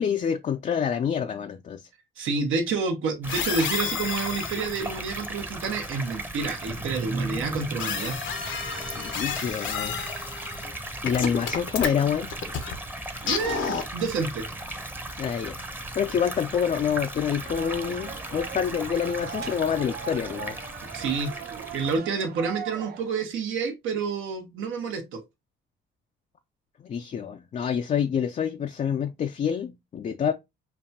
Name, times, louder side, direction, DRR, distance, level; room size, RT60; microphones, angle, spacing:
voice 1, 0.0-1.8 8.9-10.0 11.0-12.3 15.2-15.6 16.0-20.6 26.8-30.3, left 8 dB, 40° left, 0.4 m, -27 dB
voice 2, 2.2-8.2 13.2-14.4 20.9-21.3 21.7-25.2, right 4 dB, 85° right, 1.1 m, -29 dB
sound 1, 3.2-22.0, right 1 dB, 10° right, 0.7 m, -36 dB
sound 2, 3.3-5.0 7.8-10.7 11.0-12.7 13.2-14.1, left 7 dB, 75° left, 0.8 m, -31 dB
sound 3, 17.4-23.2, right 7 dB, 55° right, 0.5 m, -39 dB
5.2 x 2.3 x 2.7 m
cardioid pair, 90°, 20 cm